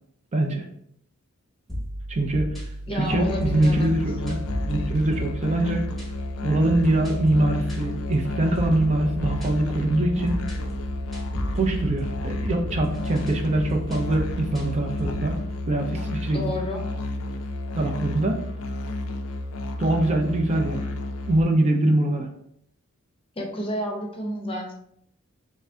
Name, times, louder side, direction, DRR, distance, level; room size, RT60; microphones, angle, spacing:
voice 1, 0.3-0.7 2.1-2.5 2.9-5.8 6.4-10.4 11.6-15.4 15.7-16.5 17.8-18.4 19.8-20.9 21.3-22.3, right 1 dB, 30° right, 3 dB, 0.4 m, -23 dB
sound 1, 1.7-15.4, equal, ahead, 0.9 m, -35 dB
voice 2, 2.9-3.9 16.3-16.8 23.4-24.7, equal, 25° left, 1 dB, 0.6 m, -30 dB
Musical instrument, 3.0-21.4, left 1 dB, 65° left, 0.5 m, -31 dB
3.3 x 2.6 x 3.3 m, 0.69 s
head